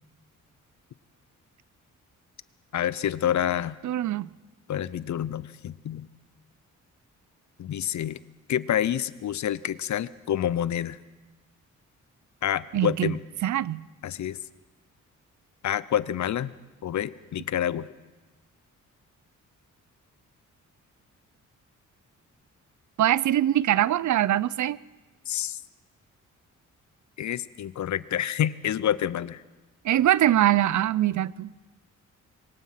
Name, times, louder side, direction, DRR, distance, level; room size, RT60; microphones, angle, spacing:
voice 1, 2.7-3.8 4.7-6.1 7.6-8.2 8.5-11.0 12.4-13.2 14.0-14.4 15.6-16.5 16.8-17.9 25.3-25.6 27.2-29.4, left 10 dB, 65° left, 18 dB, 0.7 m, -28 dB
voice 2, 3.8-4.3 12.7-13.2 13.4-13.9 23.0-24.8 29.8-31.5, right 12 dB, 65° right, 21 dB, 0.5 m, -23 dB
23.5 x 19.5 x 5.8 m, 1.2 s
cardioid pair, 85°, 32 cm